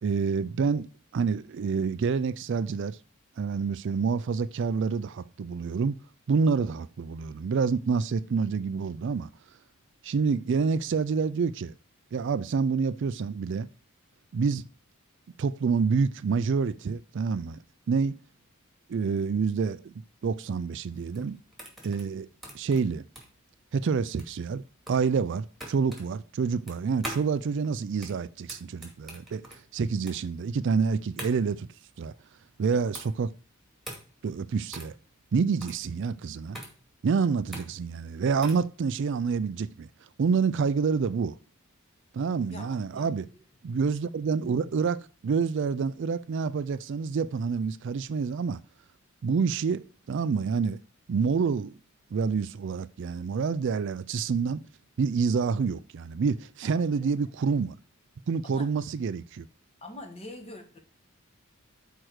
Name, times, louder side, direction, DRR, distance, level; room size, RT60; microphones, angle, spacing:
voice 1, 0.0-3.0 3.4-6.0 6.3-9.3 10.0-11.7 12.1-13.7 14.3-14.6 15.4-17.6 17.9-18.2 18.9-19.9 20.2-21.4 21.8-22.3 22.5-23.0 23.7-29.4 29.7-31.7 32.0-32.1 32.6-33.3 34.2-35.0 35.3-36.6 37.0-39.9 40.2-41.4 42.1-43.3 43.6-48.6 49.2-50.8 51.1-51.8 52.1-54.6 55.0-57.8 58.3-59.5, right 5 dB, 60° right, 0.4 m, -27 dB
sound 1, 20.9-38.7, right 1 dB, ahead, 2.3 m, -44 dB
voice 2, 42.5-43.4 56.6-57.1 58.4-58.7 59.8-60.8, left 1 dB, 30° left, 1.5 m, -45 dB
6.2 x 4.6 x 6.4 m
head